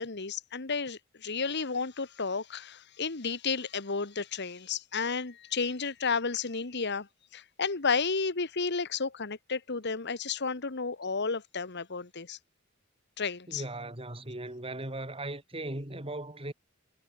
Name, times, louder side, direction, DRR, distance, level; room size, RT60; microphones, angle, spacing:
voice 1, 0.0-7.1 7.3-12.4 13.2-13.6, left 5 dB, 55° left, 1.5 m, -32 dB
voice 2, 13.5-16.5, right 1 dB, 30° right, 5.4 m, -38 dB
head